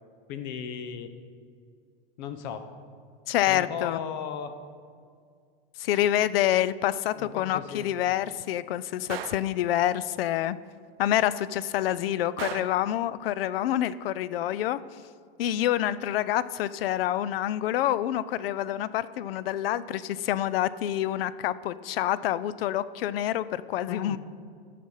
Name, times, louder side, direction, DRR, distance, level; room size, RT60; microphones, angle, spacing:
voice 1, 0.3-1.1 2.2-2.7 3.5-4.5 7.1-7.9 23.9-24.2, left 7 dB, 50° left, 9 dB, 0.9 m, -36 dB
voice 2, 3.3-4.0 5.8-10.6 11.0-14.8 15.4-24.2, left 12 dB, 75° left, 17 dB, 0.5 m, -27 dB
Gunshot gunfire, 9.1-9.5 12.4-12.9, right 11 dB, 80° right, 0.7 m, -36 dB
15.0 x 5.1 x 5.6 m, 2.1 s
supercardioid pair, 165°, 30 cm